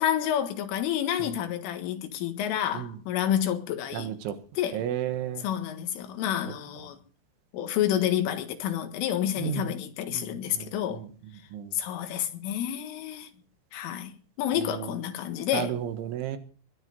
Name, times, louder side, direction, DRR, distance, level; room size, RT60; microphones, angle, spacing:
voice 1, 0.0-4.1 4.6-4.9 5.4-7.0 7.5-11.0 11.7-13.3 13.7-15.8, left 10 dB, 90° left, 4.2 m, -29 dB
voice 2, 3.9-4.4 4.7-5.5 9.4-9.7 10.1-11.1 11.5-11.7 14.6-14.9 15.5-16.4, right 10 dB, 75° right, 3.8 m, -33 dB
21.5 x 9.8 x 5.3 m
omnidirectional pair, 5.6 m